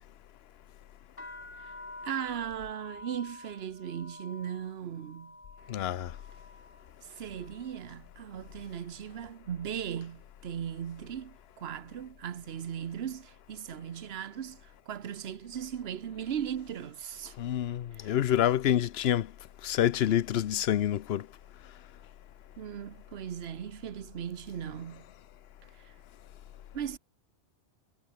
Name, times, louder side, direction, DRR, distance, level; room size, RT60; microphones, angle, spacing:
sound 1, 1.1-9.0 9.3-10.0 10.6-10.9 11.2-12.6, left 2 dB, 50° left, 4.2 m, -50 dB
voice 1, 2.0-5.4 7.0-17.4 17.9-18.1 22.6-25.0 25.8-25.9 26.7-27.0, right 9 dB, 60° right, 1.1 m, -38 dB
voice 2, 5.7-6.1 17.4-19.3 19.6-21.3, left 11 dB, 65° left, 0.8 m, -27 dB
omnidirectional pair, 1.2 m